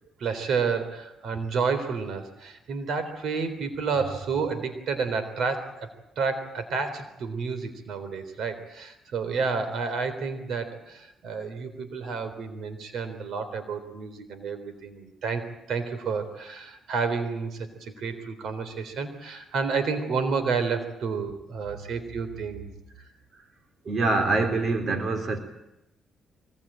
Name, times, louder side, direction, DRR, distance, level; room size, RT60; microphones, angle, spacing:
voice 1, 0.2-5.9 6.2-22.6, right 5 dB, 70° right, 11 dB, 3.6 m, -30 dB
voice 2, 23.9-25.4, right 3 dB, 50° right, 6 dB, 3.5 m, -25 dB
24.0 x 20.5 x 8.9 m, 0.89 s
cardioid pair, 90°, 0 cm